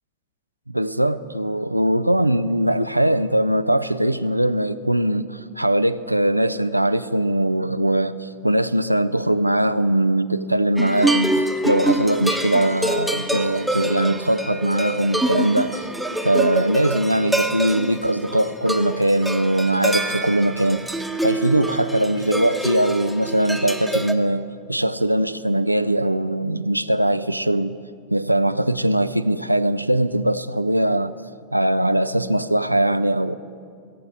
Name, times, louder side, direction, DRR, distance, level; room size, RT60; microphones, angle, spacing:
voice 1, 0.7-15.8 16.2-20.8 21.2-27.7 28.1-31.1 31.5-33.3, right 1 dB, 90° right, 0.4 m, -21 dB
sound 1, 10.8-24.1, right 1 dB, ahead, 1.1 m, -26 dB
20.0 x 7.7 x 8.4 m
figure-of-eight pair, 90°, 0 cm